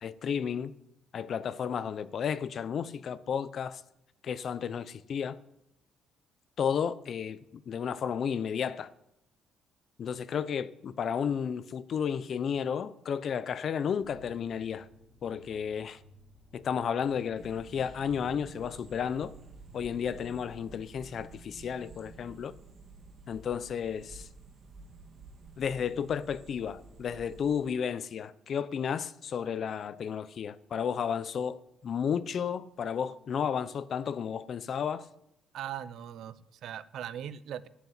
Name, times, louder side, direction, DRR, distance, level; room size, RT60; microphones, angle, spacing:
voice 1, 0.0-0.7 1.1-3.8 4.2-5.4 6.6-8.9 10.0-14.9 15.2-16.0 16.5-19.3 19.7-22.5 23.3-24.3 25.6-35.1, left 7 dB, 45° left, 0.7 m, -32 dB
sound 1, 14.0-20.6, left 1 dB, ahead, 2.5 m, -57 dB
sound 2, 17.3-27.7, right 3 dB, 35° right, 2.2 m, -51 dB
voice 2, 35.5-37.7, right 10 dB, 70° right, 0.7 m, -40 dB
11.5 x 8.3 x 9.6 m
cardioid pair, 145°, 0 cm